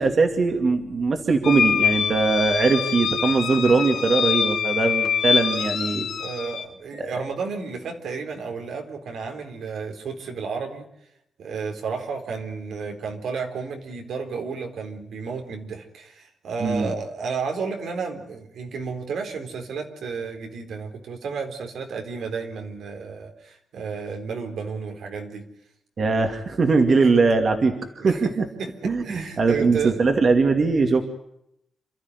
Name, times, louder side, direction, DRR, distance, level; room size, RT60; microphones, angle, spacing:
voice 1, 0.0-6.1 7.0-7.1 16.6-16.9 26.0-28.5 28.8-31.0, right 4 dB, 45° right, 5 dB, 2.4 m, -21 dB
sound 1, 1.4-6.6, left 7 dB, 80° left, 2.6 m, -24 dB
voice 2, 6.2-10.8 11.4-25.5 28.0-28.3 28.6-30.0, right 5 dB, 85° right, 4 dB, 4.1 m, -32 dB
28.0 x 13.5 x 9.7 m, 0.77 s
wide cardioid pair, 125°, 0 cm